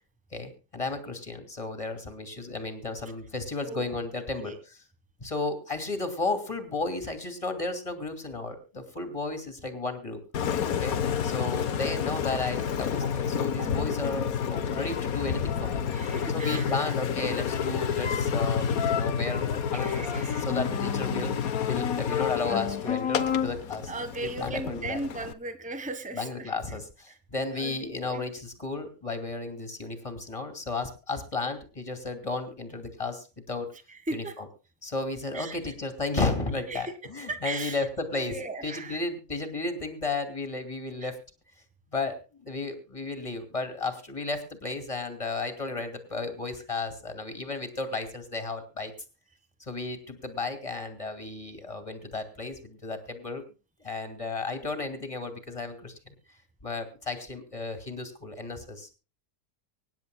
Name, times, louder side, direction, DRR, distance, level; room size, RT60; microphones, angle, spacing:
voice 1, 0.3-4.8 5.2-10.2 10.8-15.8 16.3-21.3 21.7-23.9 24.2-25.0 26.1-33.7 34.1-34.5 34.8-38.4 38.6-41.2 41.9-48.9 49.6-53.4 53.8-55.9 56.6-58.9, left 3 dB, 20° left, 7 dB, 2.6 m, -33 dB
Engine, 10.3-25.3, left 7 dB, 60° left, 1.4 m, -29 dB
voice 2, 15.9-16.7 19.4-20.5 23.9-26.5 27.5-28.2 34.1-34.3 35.3-35.6 36.7-36.9 37.3-37.8 38.3-39.0, right 2 dB, 5° right, 9 dB, 1.3 m, -37 dB
24.5 x 10.5 x 2.2 m, 0.32 s
omnidirectional pair, 1.8 m